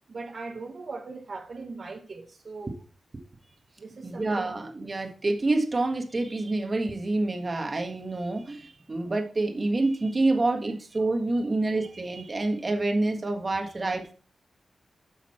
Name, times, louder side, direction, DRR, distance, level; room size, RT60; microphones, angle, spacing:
voice 1, 0.1-2.7 3.8-4.5 11.3-11.4 11.8-11.9, right 3 dB, 60° right, 1.4 m, -40 dB
voice 2, 4.0-14.1, right 2 dB, 40° right, 1.5 m, -27 dB
8.8 x 5.7 x 4.3 m
cardioid pair, 70°, 0 cm